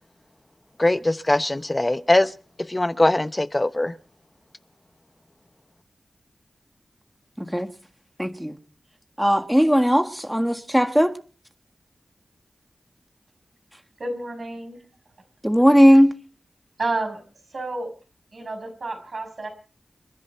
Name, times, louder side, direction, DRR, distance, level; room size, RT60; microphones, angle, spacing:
voice 1, 0.8-2.3 2.7-3.9, left 1 dB, 30° left, 0.8 m, -21 dB
voice 2, 7.4-7.7 8.2-8.6 9.2-11.1 15.4-16.1, equal, 5° right, 1.6 m, -17 dB
voice 3, 14.0-14.8 16.8-17.2 17.5-17.9 18.3-19.5, right 2 dB, 70° right, 5.7 m, -30 dB
29.0 x 10.5 x 4.5 m
cardioid pair, 40°, 0 cm